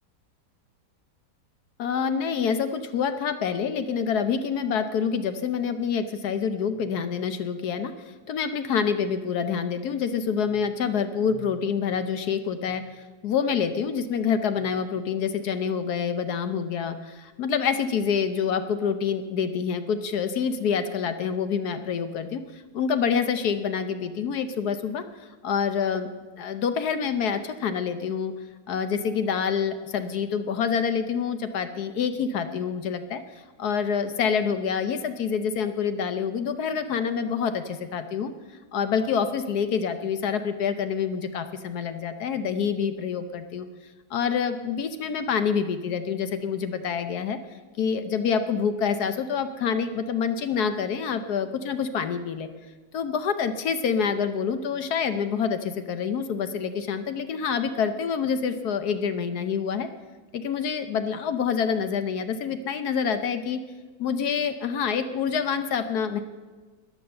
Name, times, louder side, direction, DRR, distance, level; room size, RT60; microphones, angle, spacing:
voice 1, 1.8-7.9 8.3-12.8 13.2-25.0 25.4-26.1 26.4-28.3 28.7-33.2 33.6-38.3 38.7-43.7 44.1-47.4 47.8-52.5 52.9-59.9 60.3-63.6 64.0-66.2, left 6 dB, 65° left, 10 dB, 1.2 m, -27 dB
13.5 x 9.8 x 6.6 m, 1.3 s
omnidirectional pair, 1.9 m